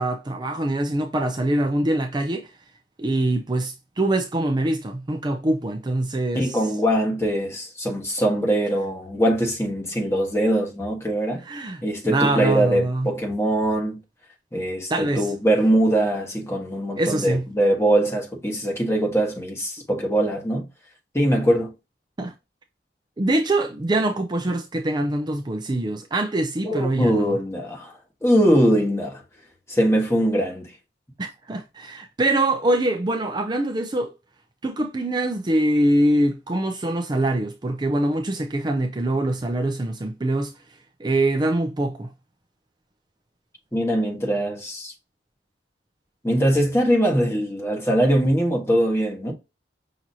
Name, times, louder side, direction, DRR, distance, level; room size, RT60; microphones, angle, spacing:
voice 1, 0.0-2.5 3.0-6.6 11.4-11.8 12.1-13.1 14.9-15.3 17.0-17.5 22.2-22.3 23.2-27.4 31.2-34.1 34.6-40.5 41.0-42.1, right 1 dB, 25° right, 0.5 m, -24 dB
voice 2, 6.3-11.4 11.8-14.0 14.5-20.7 21.1-21.7 26.6-27.9 28.2-29.2 29.7-30.7 43.7-44.9 46.2-49.3, right 1 dB, 15° left, 1.4 m, -22 dB
6.0 x 2.9 x 2.7 m
head